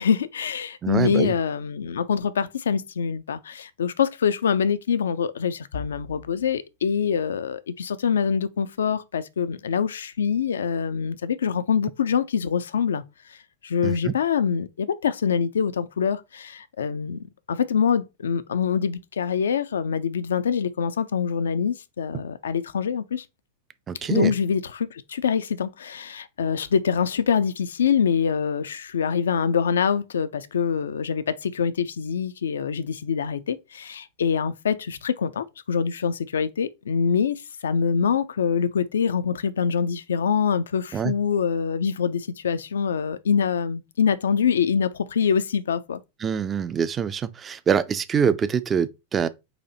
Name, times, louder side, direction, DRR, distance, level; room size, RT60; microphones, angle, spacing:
voice 1, 0.0-13.0 13.6-23.2 24.0-46.0, left 7 dB, 70° left, 0.4 m, -25 dB
voice 2, 0.8-1.4 13.8-14.1 23.9-24.3 40.9-41.1 46.2-49.3, right 7 dB, 25° right, 0.4 m, -24 dB
4.2 x 2.7 x 4.0 m
figure-of-eight pair, 90°, 0 cm